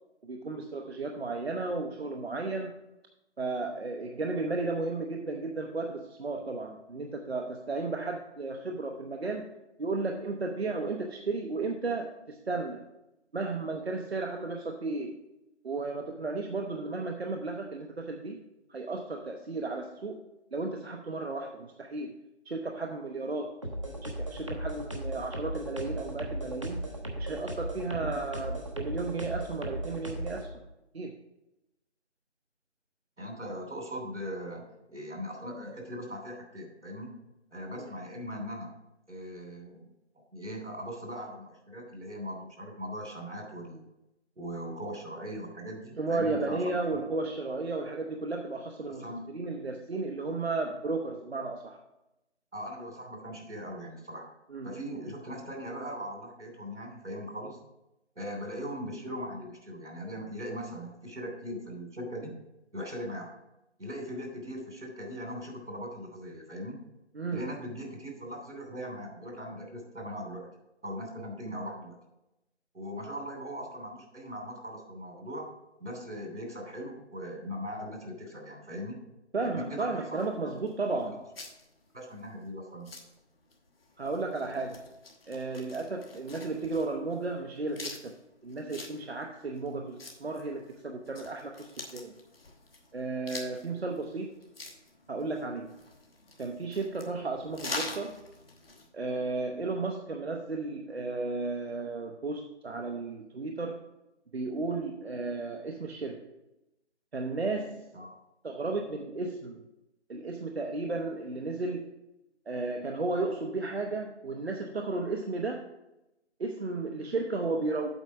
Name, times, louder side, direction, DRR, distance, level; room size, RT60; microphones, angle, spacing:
voice 1, 0.2-2.8 3.4-9.5 9.8-12.9 13.3-15.2 15.6-18.4 18.7-20.2 20.5-22.2 22.5-23.6 24.0-30.5 30.9-31.1 37.7-37.9 46.0-51.8 54.5-54.7 67.1-67.5 79.3-81.2 84.0-84.9 85.3-88.2 88.4-92.1 92.9-94.4 95.1-95.8 96.4-98.2 98.9-103.8 104.3-106.3 107.1-108.0 108.4-109.6 110.1-111.9 112.5-115.6 116.4-117.9, right 3 dB, 60° right, 3 dB, 0.8 m, -34 dB
sound 1, 23.6-30.4, right 1 dB, 25° right, 0.7 m, -36 dB
voice 2, 33.2-37.1 37.5-38.7 39.1-39.9 40.3-43.9 44.4-46.6 48.9-49.2 52.5-54.3 54.6-57.6 58.1-62.3 62.7-63.3 63.8-66.8 67.3-70.5 70.8-72.0 72.7-75.5 75.8-79.0 79.4-80.2 81.9-82.9 107.9-108.2, equal, 85° right, 1 dB, 3.1 m, -39 dB
sound 2, 80.2-98.9, left 3 dB, 55° left, 1.2 m, -45 dB
8.1 x 4.4 x 6.0 m, 0.92 s
figure-of-eight pair, 160°, 35 cm